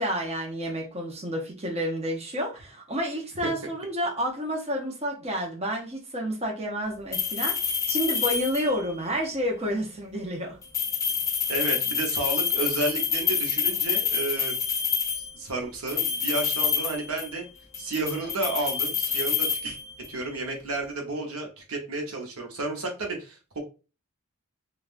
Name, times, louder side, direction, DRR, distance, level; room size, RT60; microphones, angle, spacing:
voice 1, 0.0-10.6, equal, 30° right, -1 dB, 0.7 m, -30 dB
sound 1, 7.1-8.9 10.6-15.3 15.9-17.4 17.7-20.2, left 7 dB, 15° left, 0.4 m, -27 dB
voice 2, 11.5-14.6 15.1-17.4 17.8-19.8 20.1-23.6, right 2 dB, 75° right, 2 dB, 0.8 m, -31 dB
3.5 x 2.3 x 2.5 m, 0.32 s
head